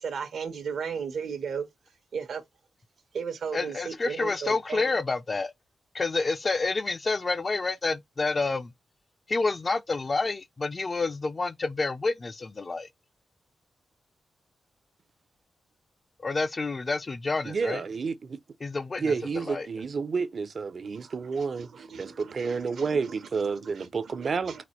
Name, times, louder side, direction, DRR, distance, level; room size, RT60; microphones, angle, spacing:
voice 1, 0.0-1.7 2.1-2.4 3.1-4.9 20.9-21.1 21.6-23.1 23.6-24.6, right 6 dB, 80° right, 0.9 m, -36 dB
voice 2, 3.5-5.5 5.9-8.7 9.3-12.9 16.2-17.8 18.6-19.0 19.5-19.7, left 3 dB, 35° left, 0.3 m, -28 dB
voice 3, 17.5-18.4 19.0-24.6, right 5 dB, 50° right, 0.5 m, -30 dB
4.1 x 2.5 x 4.2 m
wide cardioid pair, 120°, 0 cm